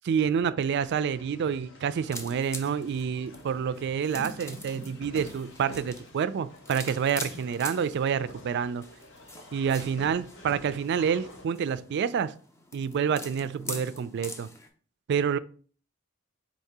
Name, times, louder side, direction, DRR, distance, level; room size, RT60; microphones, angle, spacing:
voice 1, 0.1-8.8 9.5-12.3 12.7-14.5 15.1-15.4, right 7 dB, 50° right, 0.3 m, -28 dB
sound 1, 0.7-11.5, left 1 dB, 60° left, 0.9 m, -49 dB
sound 2, 2.1-14.7, left 1 dB, 15° left, 0.6 m, -44 dB
4.1 x 2.7 x 4.6 m
head